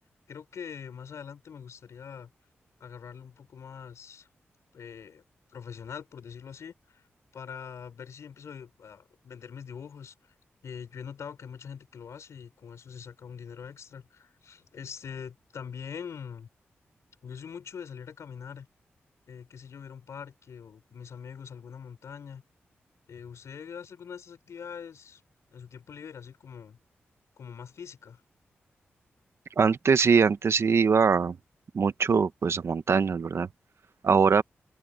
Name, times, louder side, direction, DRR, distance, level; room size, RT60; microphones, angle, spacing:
voice 1, 0.3-2.3 2.8-4.3 4.7-5.2 5.5-7.0 7.3-10.3 10.6-16.5 17.2-18.7 19.3-22.4 23.1-25.2 25.5-26.8 27.4-28.2, left 7 dB, 75° left, 5.3 m, -43 dB
voice 2, 29.6-31.4 31.7-33.5 34.0-34.4, right 5 dB, 65° right, 1.2 m, -22 dB
open air
supercardioid pair, 40°, 5 cm